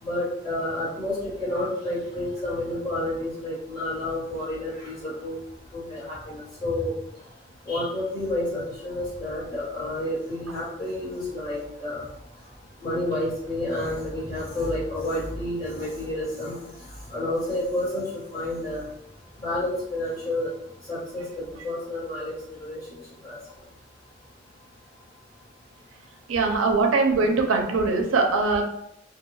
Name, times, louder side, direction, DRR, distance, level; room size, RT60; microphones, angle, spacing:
voice 1, 0.0-5.4 5.7-6.9 7.6-12.0 12.8-16.6 17.1-18.0 18.3-18.9 19.4-20.5 20.9-22.8 23.2-23.4, left 1 dB, 20° left, -10 dB, 1.4 m, -30 dB
voice 2, 26.3-28.6, right 3 dB, 80° right, 3 dB, 0.5 m, -22 dB
2.4 x 2.2 x 3.1 m, 0.75 s
head